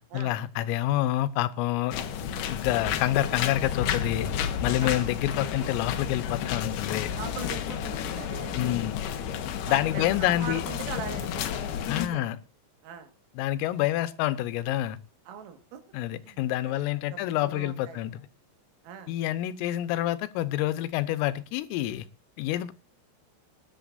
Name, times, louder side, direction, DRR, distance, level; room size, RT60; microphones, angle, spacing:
voice 1, 0.0-2.0 2.5-4.3 4.6-7.1 8.6-9.0 9.7-10.6 11.9-12.4 13.4-15.0 15.9-18.2 19.1-22.1 22.4-22.7, left 14 dB, 90° left, 12 dB, 3.5 m, -27 dB
sound 1, 1.9-12.1, left 9 dB, 70° left, 2.6 m, -31 dB
sound 2, 4.9-11.8, right 1 dB, 30° right, 6.0 m, -57 dB
voice 2, 7.2-8.8 9.7-12.3 12.8-13.1 15.3-15.8 16.2-18.0 18.8-19.2, right 7 dB, 85° right, 7 dB, 4.4 m, -41 dB
24.0 x 11.0 x 2.6 m, 0.29 s
omnidirectional pair, 5.8 m